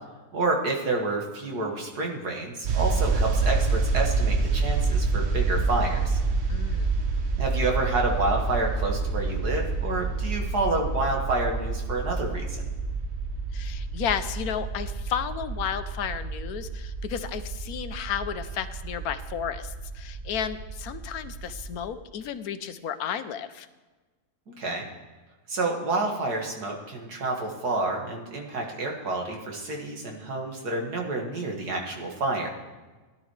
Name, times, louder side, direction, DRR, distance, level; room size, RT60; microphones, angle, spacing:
voice 1, 0.3-6.2 7.4-12.6 24.5-24.8 25.5-32.5, right 2 dB, 90° right, 1 dB, 2.4 m, -29 dB
sound 1, 2.6-21.8, right 4 dB, 50° right, 0.9 m, -28 dB
voice 2, 6.5-6.9 13.5-23.7, left 8 dB, 75° left, 11 dB, 1.2 m, -33 dB
16.5 x 11.0 x 3.3 m, 1.3 s
omnidirectional pair, 1.6 m